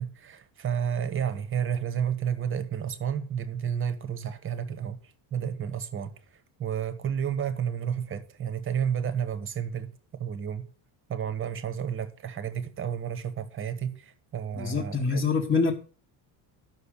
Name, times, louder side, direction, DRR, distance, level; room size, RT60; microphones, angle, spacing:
voice 1, 0.0-5.0 5.3-6.1 6.6-10.7 11.1-15.2, right 8 dB, 25° right, 1.3 m, -31 dB
voice 2, 14.5-15.7, left 4 dB, 20° left, 1.4 m, -25 dB
12.0 x 6.5 x 6.5 m
cardioid pair, 155°, 46 cm